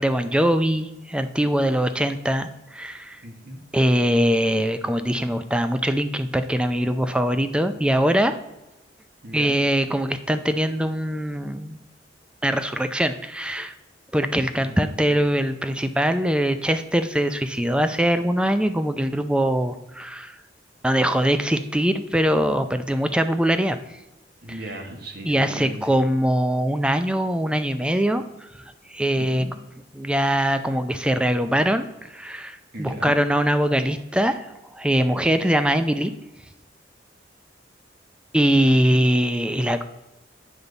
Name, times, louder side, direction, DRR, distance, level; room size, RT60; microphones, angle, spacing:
voice 1, 0.0-3.2 3.7-8.3 9.3-11.8 12.4-13.7 14.1-20.4 20.8-23.8 25.2-28.2 28.9-29.4 30.0-34.5 34.7-36.1 38.3-39.8, equal, 5° right, 9 dB, 0.4 m, -22 dB
voice 2, 3.2-3.6 9.2-9.6 14.6-14.8 24.4-26.0 29.2-29.5 32.7-33.2 38.9-39.0, right 1 dB, 55° right, 3 dB, 1.5 m, -37 dB
8.9 x 6.8 x 3.9 m, 0.99 s
head